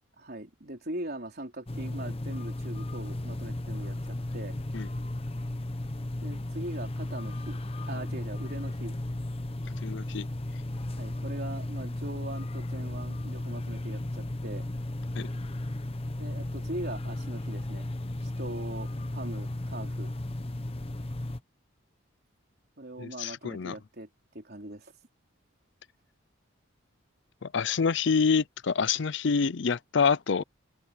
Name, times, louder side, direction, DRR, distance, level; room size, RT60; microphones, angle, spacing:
voice 1, 0.2-4.6 6.2-7.6 7.9-9.0 10.9-14.7 16.2-17.9 18.2-20.1 22.8-24.1 24.3-24.9, right 1 dB, 45° right, 4.1 m, -40 dB
sound 1, 1.7-21.4, left 1 dB, 25° left, 0.9 m, -35 dB
voice 2, 9.8-10.3 15.1-15.3 23.0-23.7 27.4-30.4, left 5 dB, 55° left, 0.5 m, -27 dB
open air
head